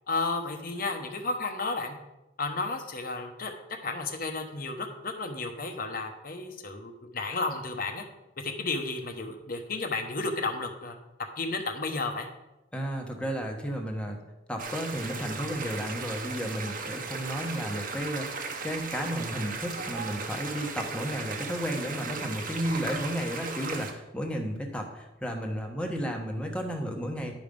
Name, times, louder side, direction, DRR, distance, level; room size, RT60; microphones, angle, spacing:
voice 1, 0.1-1.9 2.4-3.5 3.8-8.0 8.4-11.0 11.4-12.3, left 3 dB, 55° left, 4 dB, 1.0 m, -32 dB
voice 2, 12.7-14.2 14.5-27.3, equal, 5° left, 1 dB, 1.1 m, -33 dB
sound 1, 14.6-23.9, right 4 dB, 50° right, 1.1 m, -36 dB
10.5 x 5.1 x 5.3 m, 0.97 s
head